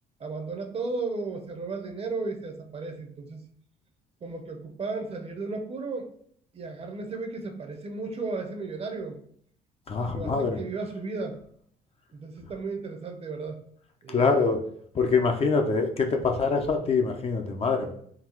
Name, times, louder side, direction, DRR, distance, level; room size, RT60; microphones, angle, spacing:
voice 1, 0.2-3.5 4.2-6.1 6.5-9.2 10.0-11.4 12.1-13.6 14.0-14.5, right 3 dB, 35° right, 5 dB, 0.7 m, -34 dB
voice 2, 9.9-10.6 14.1-14.6 14.9-17.9, left 4 dB, 35° left, 4 dB, 0.6 m, -24 dB
3.9 x 2.3 x 4.3 m, 0.63 s
cardioid pair, 110°, 17 cm